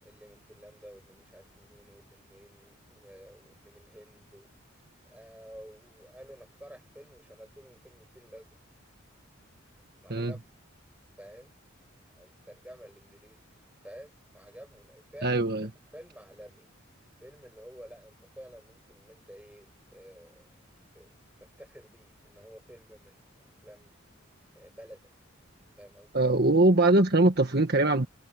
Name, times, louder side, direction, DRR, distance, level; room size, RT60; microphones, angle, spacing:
voice 1, 0.0-4.5 5.1-8.6 10.0-10.4 11.2-11.5 12.1-13.4 13.8-16.7 17.2-20.7 20.9-21.1 21.4-23.9 24.5-25.1 25.8-26.3, equal, 5° right, 7.2 m, -51 dB
voice 2, 15.2-15.7 26.1-28.1, right 2 dB, 50° right, 1.6 m, -22 dB
head